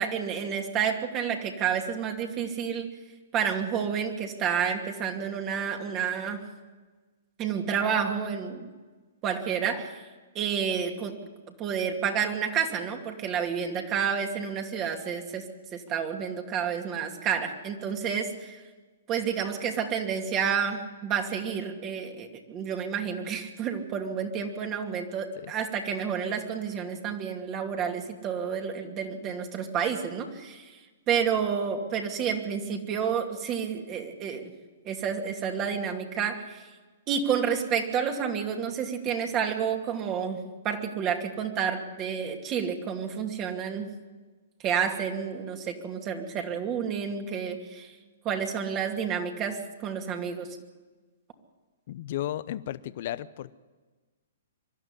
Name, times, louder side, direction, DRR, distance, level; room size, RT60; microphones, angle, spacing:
voice 1, 0.0-2.9 3.3-6.5 7.4-8.7 9.2-10.0 10.3-11.3 11.6-15.4 15.7-18.6 19.1-30.7 31.1-34.5 34.8-36.7 37.1-44.0 44.6-47.9 48.2-50.5, right 7 dB, 30° right, 4 dB, 2.6 m, -30 dB
voice 2, 51.9-53.5, left 13 dB, 55° left, 15 dB, 0.8 m, -34 dB
24.0 x 12.0 x 9.9 m, 1.3 s
hypercardioid pair, 125°, 0 cm